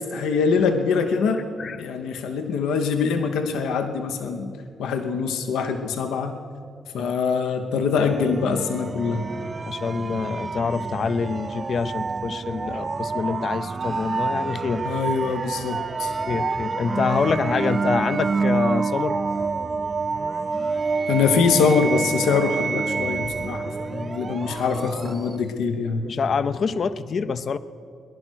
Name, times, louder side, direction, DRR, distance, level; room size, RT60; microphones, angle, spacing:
voice 1, 0.1-1.4 1.8-4.5 4.8-6.3 6.9-9.3 14.8-16.1 21.1-26.1, left 5 dB, 85° left, 6 dB, 0.9 m, -23 dB
sound 1, 8.0-25.5, right 4 dB, 40° right, 0.4 m, -28 dB
voice 2, 9.7-14.9 16.3-19.2 24.4-25.4 26.0-27.6, left 5 dB, 55° left, 14 dB, 0.6 m, -26 dB
19.0 x 11.0 x 6.3 m, 2.3 s
cardioid pair, 65°, 0 cm